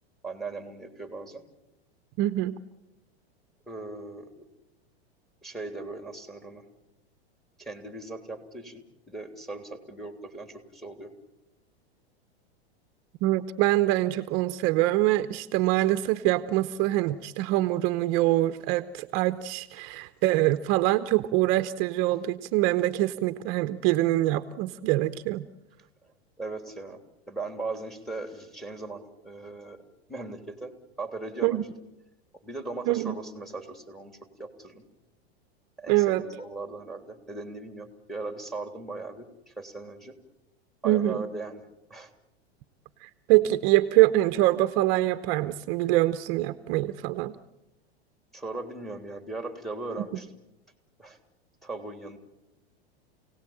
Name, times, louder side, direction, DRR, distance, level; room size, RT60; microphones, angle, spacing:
voice 1, 0.2-1.4 3.7-4.3 5.4-6.6 7.6-11.1 26.4-27.0 27.3-29.8 30.1-30.7 31.0-31.7 32.4-34.8 35.8-40.1 40.8-41.6 41.9-42.1 48.3-50.3 51.0-51.2 51.6-52.2, right 3 dB, ahead, 7 dB, 3.3 m, -38 dB
voice 2, 2.2-2.6 13.2-25.4 31.4-31.6 32.9-33.2 35.9-36.2 40.8-41.2 43.0-47.3 50.0-50.1, right 16 dB, 50° right, 11 dB, 1.0 m, -24 dB
29.5 x 18.0 x 8.8 m, 0.95 s
hypercardioid pair, 115°, 31 cm